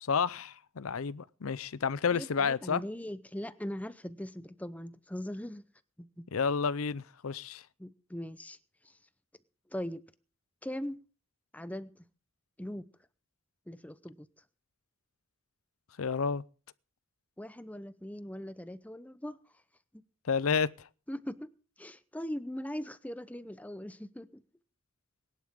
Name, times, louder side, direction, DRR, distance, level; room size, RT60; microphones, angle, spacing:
voice 1, 0.0-2.8 6.3-7.6 16.0-16.4 20.2-20.7, left 5 dB, 85° left, 0.6 m, -30 dB
voice 2, 2.1-5.6 6.0-6.3 7.8-8.6 8.8-8.9 9.7-10.0 10.6-11.0 11.5-12.0 12.6-12.8 13.7-14.3 17.4-19.4 21.1-21.5 21.8-24.4, equal, 5° left, 0.7 m, -40 dB
21.5 x 11.5 x 3.7 m
head